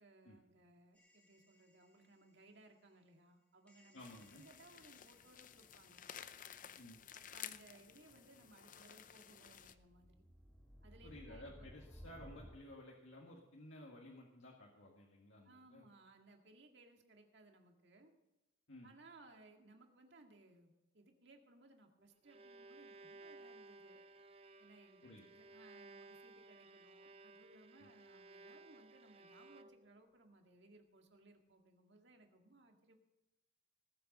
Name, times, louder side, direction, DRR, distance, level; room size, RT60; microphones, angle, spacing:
voice 1, 0.0-4.0 4.4-6.1 7.1-10.2 10.8-11.5 15.4-18.1 18.8-24.0 24.6-33.0, right 2 dB, 60° right, 3 dB, 2.0 m, -64 dB
sound 1, 1.0-2.1 3.7-5.5 9.4-12.6, equal, 5° left, 1.7 m, -59 dB
voice 2, 3.9-4.4 6.8-7.0 11.0-15.8 18.7-18.9 25.0-25.2 27.8-27.9, left 1 dB, 80° left, -2 dB, 1.9 m, -55 dB
sound 2, 4.0-9.7, left 9 dB, 45° left, 0.6 m, -54 dB
Bowed string instrument, 22.0-30.1, right 3 dB, 30° right, 0.5 m, -58 dB
19.0 x 8.0 x 5.4 m, 0.99 s
head